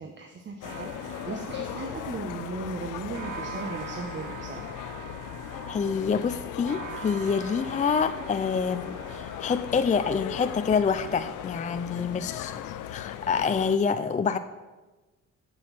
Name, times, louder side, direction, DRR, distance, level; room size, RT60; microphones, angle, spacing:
voice 1, 0.0-4.7 12.0-12.2, right 4 dB, 40° right, 3 dB, 1.1 m, -37 dB
sound 1, 0.6-13.8, left 12 dB, 85° left, 0.6 m, -38 dB
sound 2, 0.6-13.8, right 9 dB, 85° right, 0.9 m, -45 dB
voice 2, 5.5-12.5 12.9-14.4, left 6 dB, 25° left, 9 dB, 0.4 m, -27 dB
7.3 x 6.3 x 7.4 m, 1.2 s
cardioid pair, 90°, 30 cm